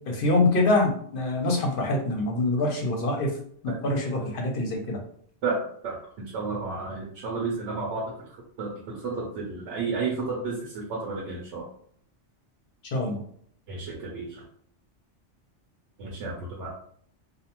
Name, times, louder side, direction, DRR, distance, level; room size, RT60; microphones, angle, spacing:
voice 1, 0.1-3.3 3.6-5.0 12.9-13.2, left 2 dB, 55° left, 1 dB, 0.7 m, -25 dB
voice 2, 5.4-8.1 8.6-11.7 13.7-14.4 16.0-16.7, right 4 dB, 80° right, -2 dB, 0.9 m, -32 dB
2.5 x 2.1 x 2.8 m, 0.62 s
omnidirectional pair, 1.2 m